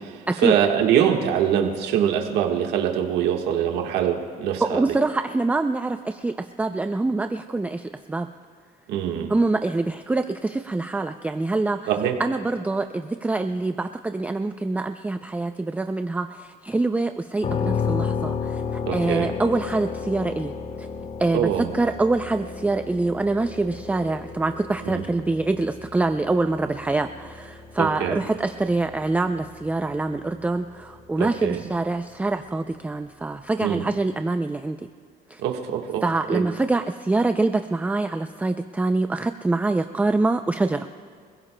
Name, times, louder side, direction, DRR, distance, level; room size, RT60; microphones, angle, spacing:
voice 1, 0.0-4.8 8.9-9.3 11.9-12.1 18.9-19.3 21.3-21.7 24.9-25.0 27.8-28.2 31.2-31.6 33.6-33.8 35.4-36.0 36.3-36.4, right 9 dB, 85° right, 3 dB, 1.4 m, -23 dB
voice 2, 4.6-8.3 9.3-11.9 12.2-20.9 21.2-34.8 35.3-35.4 36.0-40.9, right 2 dB, 10° right, 8 dB, 0.4 m, -25 dB
sound 1, 17.4-31.2, left 6 dB, 40° left, 0.9 m, -33 dB
27.0 x 16.0 x 2.2 m, 2.2 s
cardioid pair, 110°, 17 cm